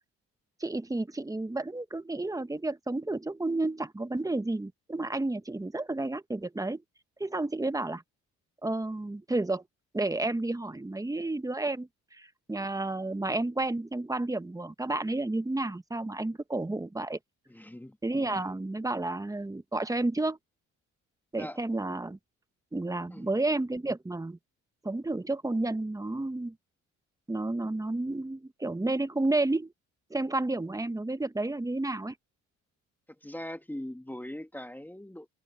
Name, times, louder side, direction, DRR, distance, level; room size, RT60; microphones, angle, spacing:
voice 1, 0.6-6.8 7.2-8.0 8.6-9.6 9.9-17.2 18.0-20.4 21.3-22.2 22.7-24.4 24.8-26.5 27.3-29.7 30.1-32.1, right 2 dB, 10° right, 1.1 m, -31 dB
voice 2, 17.5-18.0 18.3-18.4 21.4-21.6 23.1-23.3 33.2-35.3, left 1 dB, 5° left, 1.2 m, -41 dB
cardioid pair, 90°, 30 cm